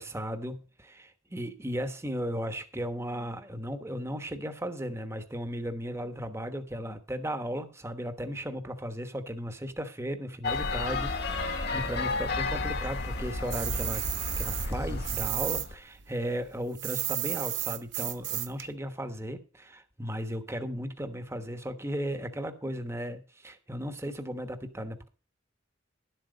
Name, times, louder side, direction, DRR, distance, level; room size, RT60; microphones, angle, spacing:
voice 1, 0.0-14.0 14.4-25.1, equal, 15° right, 1.1 m, -36 dB
sound 1, 10.4-15.8, left 3 dB, 55° left, 1.7 m, -32 dB
sound 2, 13.5-15.7 15.9-18.7, right 15 dB, 60° right, 0.7 m, -33 dB
11.5 x 7.9 x 5.1 m
head